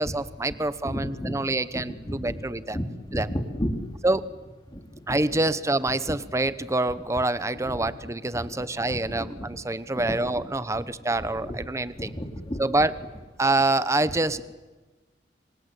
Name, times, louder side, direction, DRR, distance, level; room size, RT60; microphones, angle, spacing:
voice 1, 0.0-2.8 3.1-3.3 4.0-4.2 5.1-12.1 12.6-12.9 13.4-14.4, right 2 dB, 15° right, 14 dB, 0.9 m, -26 dB
voice 2, 0.8-1.4 1.7-2.4 2.7-3.8 4.7-4.8 5.1-5.2 7.6-7.8 8.3-9.5 9.9-10.4 11.2-11.7 11.9-12.6, equal, 25° left, 4 dB, 3.4 m, -33 dB
27.0 x 26.5 x 8.3 m, 1.2 s
head